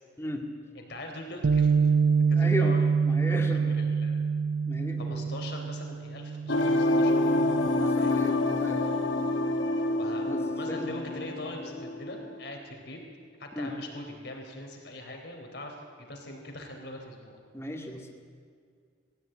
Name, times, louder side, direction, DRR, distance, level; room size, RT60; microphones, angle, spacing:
voice 1, 0.8-1.9 2.3-2.9 3.3-4.2 5.0-7.2 8.0-8.3 9.6-9.7 10.0-10.3 10.6-13.0 13.4-17.4, left 1 dB, 60° left, 2 dB, 3.9 m, -42 dB
Bass guitar, 1.4-7.7, right 5 dB, 75° right, 0.6 m, -26 dB
voice 2, 2.3-2.8 3.0-3.6 4.7-5.3 7.8-8.8 10.3-10.4 10.7-10.9 13.5-13.7 17.5-18.1, equal, 15° left, 2 dB, 2.1 m, -35 dB
sound 1, 6.5-12.3, left 2 dB, 80° left, 1.5 m, -27 dB
19.5 x 16.0 x 9.1 m, 2.1 s
head